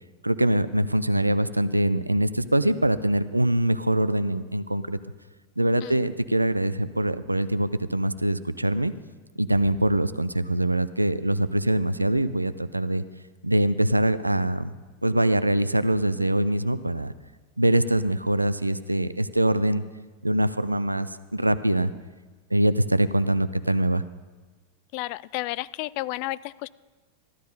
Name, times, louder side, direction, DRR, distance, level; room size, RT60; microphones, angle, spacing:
voice 1, 0.2-5.0 5.6-8.9 9.4-13.0 13.4-14.7 15.0-17.1 17.6-19.8 20.2-21.9 22.5-24.0, right 1 dB, 85° right, 14 dB, 0.5 m, -23 dB
voice 2, 24.9-26.7, left 19 dB, 45° left, 20 dB, 0.3 m, -32 dB
14.5 x 12.0 x 5.4 m, 1.3 s
figure-of-eight pair, 90°, 0 cm